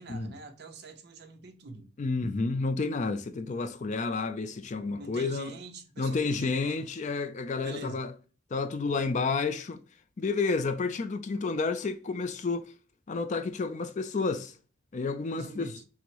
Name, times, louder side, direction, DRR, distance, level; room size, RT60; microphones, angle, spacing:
voice 1, 0.0-1.9 4.9-6.8 7.6-8.0 15.3-15.8, right 3 dB, 55° right, 0.7 m, -45 dB
voice 2, 2.0-5.5 6.0-8.1 8.5-9.8 10.2-12.7 13.1-14.5 14.9-15.7, left 4 dB, 35° left, 0.4 m, -30 dB
6.0 x 2.1 x 2.9 m
head